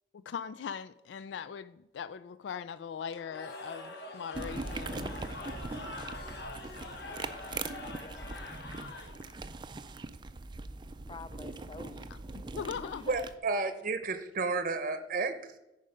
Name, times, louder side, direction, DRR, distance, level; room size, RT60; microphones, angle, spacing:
voice 1, 0.1-5.2 11.9-13.0, left 7 dB, 85° left, 0.3 m, -41 dB
Cheering / Crowd, 3.1-9.5, left 2 dB, 65° left, 1.2 m, -44 dB
sound 1, 4.3-13.4, right 3 dB, 25° right, 0.4 m, -41 dB
voice 2, 7.9-8.5 11.1-12.0 12.6-13.1, left 3 dB, 30° left, 0.5 m, -48 dB
voice 3, 13.1-15.6, right 3 dB, 50° right, 0.7 m, -32 dB
9.8 x 5.1 x 5.1 m
head